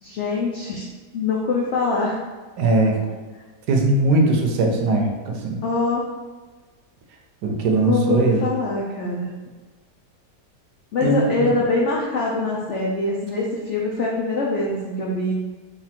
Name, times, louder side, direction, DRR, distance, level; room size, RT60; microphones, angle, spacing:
voice 1, 0.0-0.8 1.1-2.2 5.6-6.1 7.9-9.3 10.9-15.3, left 3 dB, 80° left, -3 dB, 0.6 m, -23 dB
voice 2, 2.6-3.0 3.7-5.6 7.4-8.4 11.0-11.5, right 2 dB, 75° right, 2 dB, 1.2 m, -20 dB
4.1 x 2.3 x 4.2 m, 1.3 s
omnidirectional pair, 1.8 m